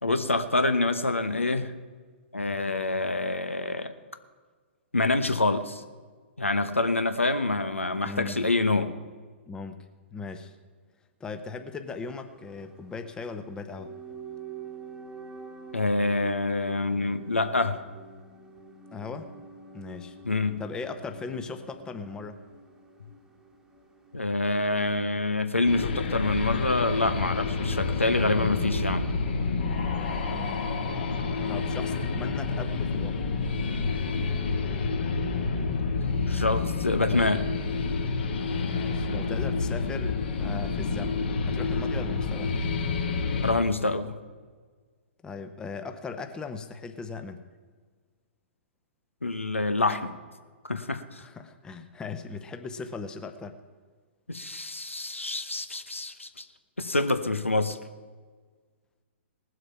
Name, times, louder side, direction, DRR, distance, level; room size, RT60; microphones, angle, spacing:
voice 1, 0.0-1.7 2.3-3.9 4.9-5.8 6.4-8.9 15.7-17.8 20.2-20.6 24.1-29.1 36.3-37.5 43.4-44.1 49.2-50.1 50.7-51.2 54.3-56.4 56.8-57.8, left 2 dB, 85° left, 10 dB, 0.9 m, -26 dB
voice 2, 8.0-8.4 9.5-9.8 10.1-10.5 11.2-13.9 18.9-19.3 19.7-20.2 20.6-22.4 30.2-30.6 31.5-33.2 38.6-42.6 45.2-47.4 51.2-53.6, left 4 dB, 10° left, 8 dB, 0.8 m, -38 dB
sound 1, 12.0-26.1 26.4-26.5, right 4 dB, 5° right, 1.3 m, -47 dB
sound 2, 25.7-43.5, left 4 dB, 55° left, 2.0 m, -29 dB
19.0 x 7.8 x 5.7 m, 1.5 s
figure-of-eight pair, 120°, 7 cm